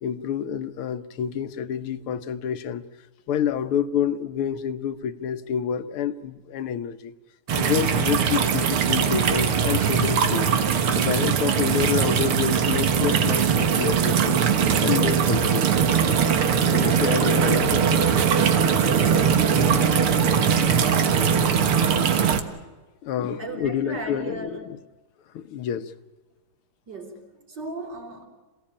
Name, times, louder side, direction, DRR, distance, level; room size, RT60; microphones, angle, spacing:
voice 1, 0.0-2.8 3.3-7.1 7.6-10.5 10.9-14.4 14.8-15.6 16.6-18.1 23.0-24.8 25.3-25.9, left 8 dB, 85° left, 1.9 m, -28 dB
sound 1, 7.5-22.4, right 7 dB, 90° right, 2.4 m, -21 dB
voice 2, 23.4-24.6 26.9-28.2, right 2 dB, 50° right, 4.6 m, -36 dB
27.5 x 17.5 x 8.7 m
omnidirectional pair, 2.3 m